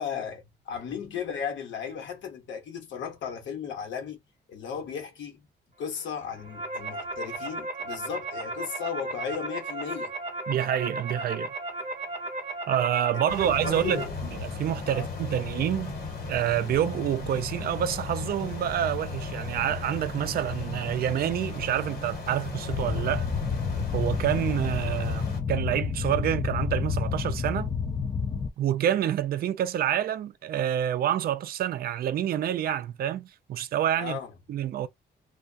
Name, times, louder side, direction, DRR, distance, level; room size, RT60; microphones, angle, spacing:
voice 1, 0.0-4.2 4.5-5.5 5.8-10.1 13.1-14.1 14.9-15.3 34.0-34.3, left 7 dB, 85° left, 1.0 m, -35 dB
sound 1, 6.2-14.0, right 2 dB, 35° right, 0.9 m, -35 dB
voice 2, 10.5-11.5 12.7-14.0 14.3-15.9 16.3-23.3 23.9-27.7 28.6-34.2 34.5-34.9, right 11 dB, 55° right, 0.4 m, -27 dB
sound 2, 13.3-25.4, left 4 dB, 55° left, 1.3 m, -36 dB
sound 3, 22.7-28.5, left 6 dB, 20° left, 0.4 m, -29 dB
2.3 x 2.2 x 2.4 m
cardioid pair, 140°, 19 cm